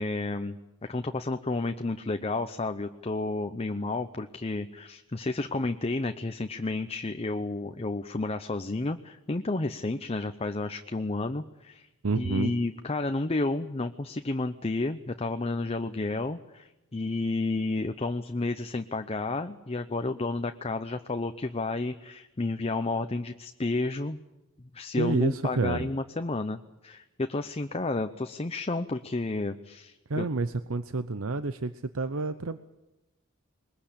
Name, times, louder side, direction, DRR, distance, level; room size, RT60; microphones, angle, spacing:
voice 1, 0.0-11.9 12.2-24.2 24.6-30.3, left 2 dB, 30° left, 8 dB, 0.8 m, -31 dB
voice 2, 12.0-12.5 25.0-25.9 30.1-32.6, right 3 dB, 85° right, 12 dB, 0.8 m, -29 dB
22.0 x 20.5 x 8.6 m, 0.99 s
head